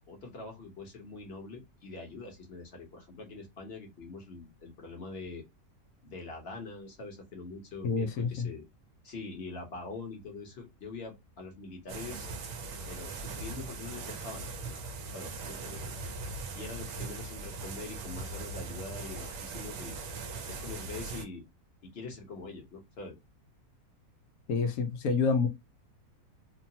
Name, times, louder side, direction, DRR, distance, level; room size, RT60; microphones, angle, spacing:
voice 1, 0.0-5.4 6.0-8.6 9.0-12.3 12.9-15.9 16.5-20.0 20.5-21.4 21.8-23.2, left 3 dB, 45° left, 1.1 m, -44 dB
voice 2, 7.8-8.5 24.5-25.5, left 4 dB, 75° left, 1.1 m, -28 dB
sound 1, 11.9-21.2, right 3 dB, 70° right, 0.9 m, -40 dB
3.0 x 2.1 x 2.6 m
omnidirectional pair, 1.6 m